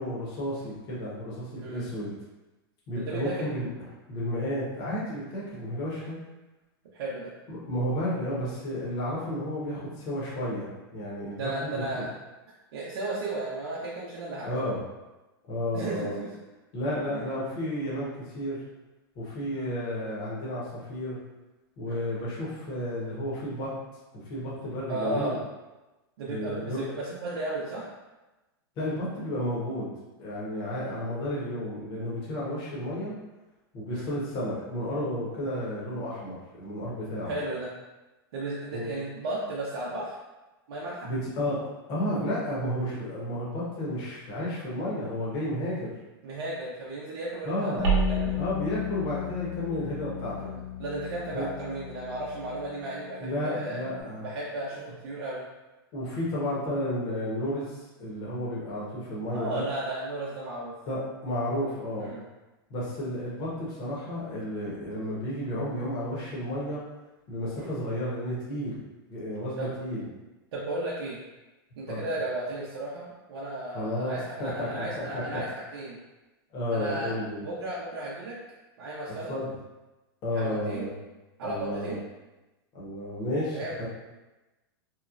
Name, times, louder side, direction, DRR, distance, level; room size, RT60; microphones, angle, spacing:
voice 1, 0.0-2.1 2.9-3.7 4.1-6.2 7.5-12.0 14.4-14.8 15.5-16.2 16.7-18.6 19.2-21.2 21.8-23.7 24.1-25.4 26.3-26.9 28.8-29.9 30.2-33.1 33.7-37.3 38.7-38.9 41.0-41.6 41.9-45.9 47.4-47.8 48.4-50.5 51.3-51.5 53.2-54.2 55.9-59.6 60.9-62.1 62.7-66.8 67.3-68.7 69.1-70.1 71.9-72.0 73.7-75.4 76.5-77.4 79.3-79.5 80.2-80.9 81.4-82.0 82.7-83.9, left 1 dB, 40° left, -7 dB, 0.8 m, -32 dB
voice 2, 3.0-3.5 6.9-7.3 11.4-12.1 12.7-14.7 15.7-16.3 17.1-17.2 19.5-19.7 21.9-22.0 24.9-25.4 26.2-27.9 30.9-31.1 33.9-34.1 37.2-37.7 38.3-40.2 40.7-41.1 46.2-48.4 50.4-53.8 54.2-55.5 59.3-60.7 62.0-62.2 67.6-67.7 69.6-69.7 70.5-71.2 71.8-76.0 76.7-77.1 77.4-78.4 78.8-79.3 80.3-80.9 81.4-82.0 83.5-83.7, right 2 dB, 75° right, -6 dB, 0.6 m, -34 dB
Bass guitar, 47.8-54.0, left 14 dB, 20° right, 0.6 m, -36 dB
sound 1, 47.8-52.7, right 4 dB, 45° right, 0.9 m, -33 dB
2.9 x 2.1 x 2.4 m, 1.1 s
supercardioid pair, 135°, 13 cm